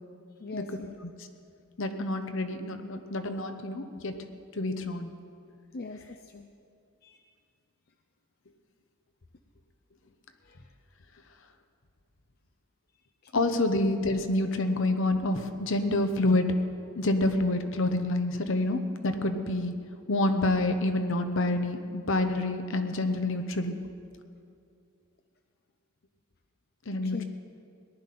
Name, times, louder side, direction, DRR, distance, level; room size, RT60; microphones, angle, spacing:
voice 1, 0.4-0.9 5.7-6.5 7.0-7.2 10.5-10.6 13.3-13.6 27.0-27.2, left 3 dB, 45° left, 5 dB, 0.5 m, -41 dB
voice 2, 1.8-4.2 4.6-5.1 13.3-16.5 17.0-19.7 20.1-23.8 26.9-27.2, left 2 dB, 65° left, 7 dB, 0.9 m, -27 dB
18.5 x 11.5 x 4.3 m, 2.4 s
head